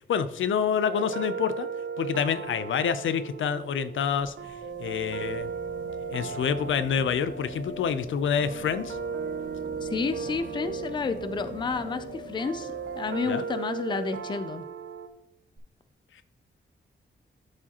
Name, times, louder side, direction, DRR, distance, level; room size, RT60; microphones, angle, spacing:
voice 1, 0.0-1.7 2.0-4.3 4.8-5.5 6.1-9.0 13.3-13.4, left 7 dB, 85° left, 12 dB, 0.5 m, -27 dB
sound 1, 0.8-15.1, right 6 dB, 70° right, 0.6 m, -37 dB
sound 2, 3.6-14.4 15.6-15.7, left 1 dB, 45° right, 1.3 m, -45 dB
voice 2, 9.8-14.6, left 4 dB, 25° left, 11 dB, 0.4 m, -31 dB
12.5 x 4.8 x 2.9 m, 0.79 s
wide cardioid pair, 165°, 20 cm